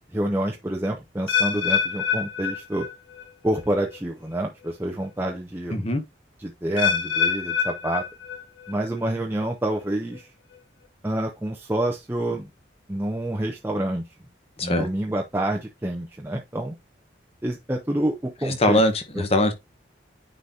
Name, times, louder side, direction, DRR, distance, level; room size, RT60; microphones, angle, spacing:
voice 1, 0.0-2.9 3.4-5.8 6.4-8.0 8.7-10.3 11.0-12.5 12.9-14.0 14.6-16.7 17.4-18.8 19.1-19.2, right 1 dB, 10° right, 0.7 m, -27 dB
sound 1, 1.3-3.3 3.6-4.0 4.6-4.7 6.8-8.7 9.0-9.5 10.1-10.2, left 7 dB, 85° left, 0.9 m, -26 dB
voice 2, 5.7-6.0 14.6-14.9 18.6-19.5, left 1 dB, 30° left, 1.1 m, -21 dB
9.5 x 4.0 x 2.8 m
head